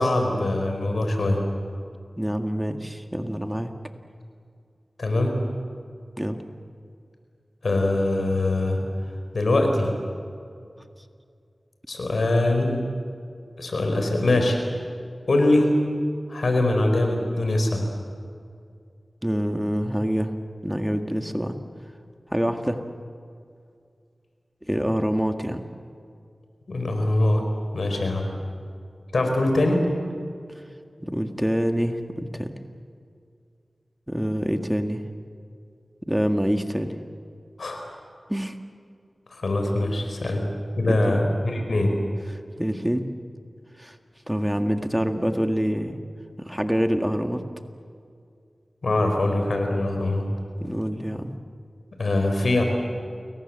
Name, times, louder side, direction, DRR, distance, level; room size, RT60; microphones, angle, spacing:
voice 1, 0.0-1.4 5.0-5.4 7.6-8.8 9.3-9.9 11.9-12.8 13.6-14.6 15.3-15.7 16.3-17.9 26.7-27.4 27.7-28.3 29.1-29.8 37.6-37.9 39.3-40.4 40.8-42.0 48.8-50.3 52.0-52.6, left 2 dB, 80° left, 4 dB, 5.1 m, -22 dB
voice 2, 2.2-3.8 6.2-6.4 19.2-20.4 20.6-21.6 22.3-22.8 24.6-25.7 31.0-32.6 34.1-35.1 36.1-36.9 38.3-38.6 40.9-41.4 42.6-43.1 43.8-44.0 44.3-46.0 46.4-47.4 50.6-51.3, equal, 10° right, 6 dB, 1.9 m, -26 dB
29.5 x 22.5 x 7.7 m, 2.3 s
cardioid pair, 45°, 0 cm